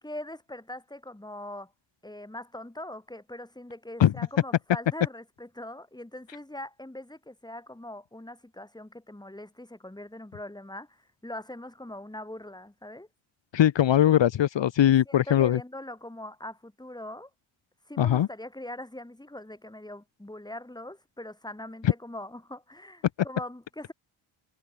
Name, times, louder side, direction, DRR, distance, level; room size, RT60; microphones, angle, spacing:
voice 1, 0.0-1.7 2.0-13.1 14.8-17.3 17.9-23.9, left 1 dB, 10° left, 4.7 m, -42 dB
voice 2, 13.5-15.6 18.0-18.3, left 11 dB, 65° left, 1.4 m, -21 dB
cardioid pair, 65°, 48 cm